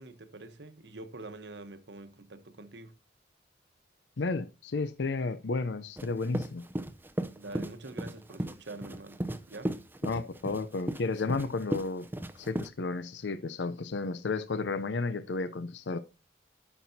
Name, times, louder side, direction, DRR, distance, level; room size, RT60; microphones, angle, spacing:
voice 1, 0.0-2.9 7.3-9.8, right 2 dB, 70° right, 1.0 m, -45 dB
voice 2, 4.2-6.7 10.0-12.1 12.3-16.0, left 3 dB, 75° left, 0.6 m, -32 dB
sound 1, 6.0-12.7, right 1 dB, 10° right, 0.6 m, -36 dB
13.5 x 6.1 x 2.7 m
head